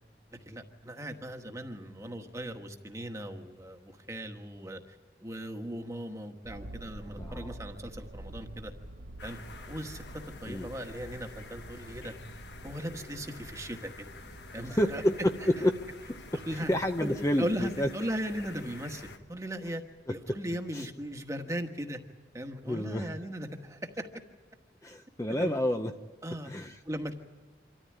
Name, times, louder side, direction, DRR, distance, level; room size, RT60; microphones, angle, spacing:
voice 1, 0.4-8.7 9.2-9.4 9.7-10.0 10.4-12.1 12.6-13.9 14.5-15.0 16.3-16.7 17.0-19.8 20.1-22.0 22.3-24.1 25.4-25.6 26.2-26.5 26.8-27.1, equal, 15° right, 5 dB, 1.3 m, -38 dB
sound 1, 6.4-20.6 21.2-21.3, right 1 dB, 70° right, 1.1 m, -49 dB
voice 2, 7.2-7.5 10.5-10.7 14.7-15.7 16.1-17.9 20.1-20.4 20.7-20.9 22.7-23.1 24.8-25.9 26.4-26.8, equal, 15° left, 6 dB, 0.6 m, -29 dB
sound 2, 9.2-19.2, left 3 dB, 70° left, 1.4 m, -48 dB
26.0 x 14.0 x 9.8 m, 1.4 s
head